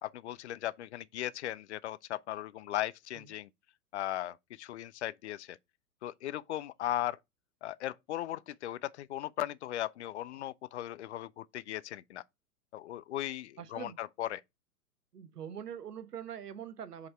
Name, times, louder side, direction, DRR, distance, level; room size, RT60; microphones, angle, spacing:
voice 1, 0.0-3.5 3.9-5.6 6.0-7.2 7.6-12.2 12.7-14.4, left 13 dB, 50° left, 0.5 m, -37 dB
voice 2, 13.6-14.0 15.1-17.1, right 8 dB, 80° right, 0.9 m, -43 dB
5.3 x 4.0 x 4.4 m
figure-of-eight pair, 110°, 47 cm